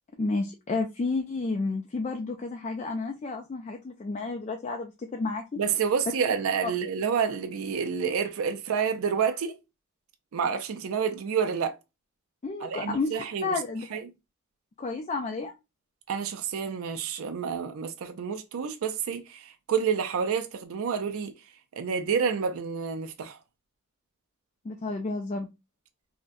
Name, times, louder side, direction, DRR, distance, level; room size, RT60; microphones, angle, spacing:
voice 1, 0.2-5.6 6.6-6.7 12.4-13.2 13.4-13.8 14.8-15.5 24.6-25.5, left 3 dB, 30° left, 0.3 m, -31 dB
voice 2, 5.6-9.6 10.3-11.8 12.6-13.5 13.9-14.1 16.1-21.3 21.7-23.4, right 6 dB, 80° right, 0.4 m, -29 dB
3.7 x 2.1 x 2.5 m
head